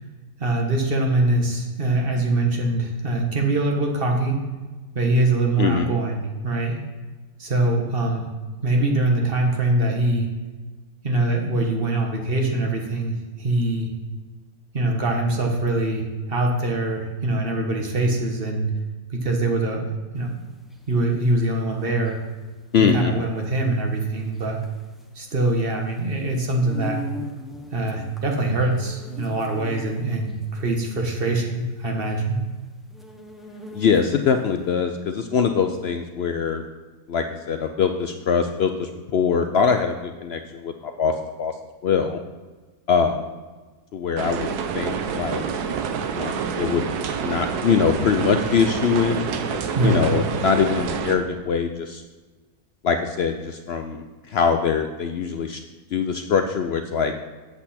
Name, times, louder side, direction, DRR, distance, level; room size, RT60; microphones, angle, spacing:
voice 1, 0.4-4.4 4.9-6.8 7.4-8.2 8.6-10.3 11.0-13.9 14.7-18.7 19.1-19.8 20.1-20.3 20.9-22.2 22.8-24.6 25.1-27.0 27.7-32.4 49.7-50.0, right 2 dB, 40° right, 1 dB, 1.4 m, -23 dB
sound 1, 20.2-34.4, equal, ahead, 0.5 m, -40 dB
voice 2, 22.7-23.1 33.7-36.6 37.1-41.5 41.8-42.2 42.9-43.3 43.9-44.5 44.7-45.4 46.1-46.9 47.2-52.0 52.8-55.6 55.9-57.1, left 6 dB, 70° left, 6 dB, 0.6 m, -23 dB
sound 2, 44.2-51.1, right 6 dB, 90° right, 1.3 m, -27 dB
8.5 x 8.0 x 4.2 m, 1.3 s
omnidirectional pair, 1.6 m